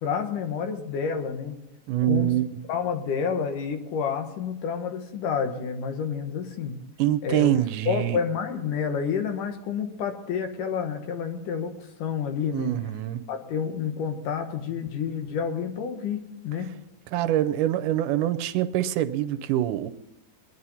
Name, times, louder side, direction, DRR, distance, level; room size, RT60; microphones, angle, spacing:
voice 1, 0.0-1.6 2.1-2.3 2.7-6.8 7.2-7.5 7.9-12.8 13.3-16.7, left 6 dB, 90° left, 6 dB, 3.0 m, -29 dB
voice 2, 1.9-2.6 7.0-8.2 12.5-13.2 17.1-19.9, right 13 dB, 90° right, 12 dB, 2.3 m, -25 dB
23.0 x 11.0 x 4.2 m, 0.87 s
omnidirectional pair, 3.6 m